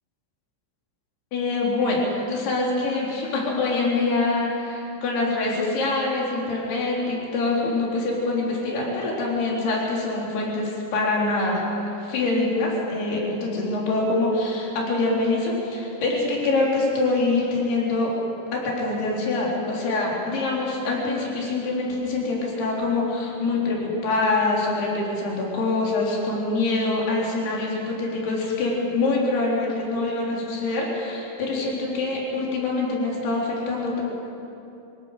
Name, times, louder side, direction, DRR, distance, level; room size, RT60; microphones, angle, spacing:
voice 1, 1.3-18.1 18.5-34.0, left 2 dB, 55° left, -3 dB, 5.5 m, -25 dB
23.5 x 18.5 x 6.7 m, 2.8 s
omnidirectional pair, 5.6 m